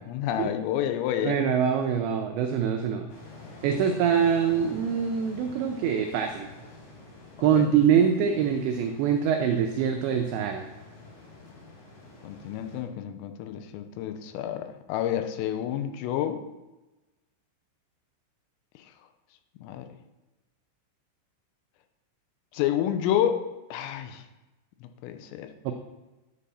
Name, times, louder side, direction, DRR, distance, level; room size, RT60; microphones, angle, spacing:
voice 1, 0.0-1.4 7.6-7.7 12.2-16.4 19.6-19.9 22.5-23.4 23.7-24.2 25.0-25.5, left 10 dB, 85° left, 8 dB, 3.3 m, -29 dB
voice 2, 1.2-3.1 3.6-6.5 7.4-10.7 25.6-25.7, right 7 dB, 90° right, 5 dB, 2.5 m, -24 dB
sound 1, 3.1-12.8, left 2 dB, 70° left, 6.2 m, -48 dB
11.0 x 8.4 x 4.2 m, 1.1 s
omnidirectional pair, 6.0 m